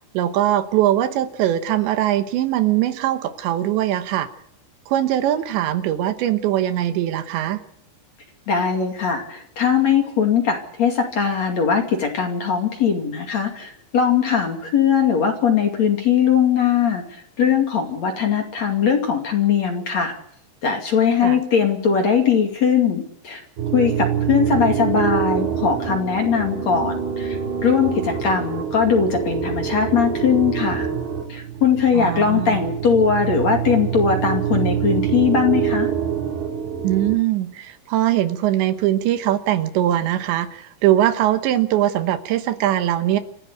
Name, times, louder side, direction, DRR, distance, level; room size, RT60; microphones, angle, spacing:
voice 1, 0.1-4.3 4.9-7.6 21.2-21.4 31.9-32.6 36.8-43.2, right 12 dB, 75° right, 10 dB, 3.3 m, -21 dB
voice 2, 8.5-20.1 20.6-23.4 23.7-30.9 31.3-35.9, left 7 dB, 45° left, 4 dB, 3.0 m, -20 dB
sound 1, 23.6-37.2, right 8 dB, 60° right, 4.1 m, -25 dB
27.5 x 15.5 x 8.2 m, 0.69 s
omnidirectional pair, 5.4 m